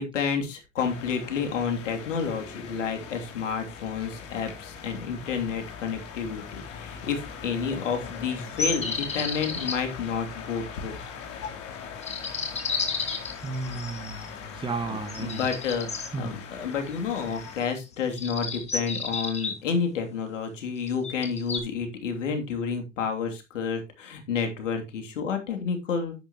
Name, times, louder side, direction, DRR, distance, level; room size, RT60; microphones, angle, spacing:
voice 1, 0.0-11.0 14.4-14.5 14.9-26.1, left 6 dB, 75° left, 3.1 m, -30 dB
sound 1, 0.8-17.6, left 6 dB, 40° left, 3.3 m, -41 dB
sound 2, 8.6-9.8 12.0-14.3 15.1-16.1 17.3-17.7 18.1-19.5 20.9-21.6, left 4 dB, 15° left, 2.3 m, -31 dB
voice 2, 13.4-15.4 16.1-16.4, right 4 dB, 15° right, 1.7 m, -33 dB
11.0 x 8.6 x 3.0 m
hypercardioid pair, 100°, 37 cm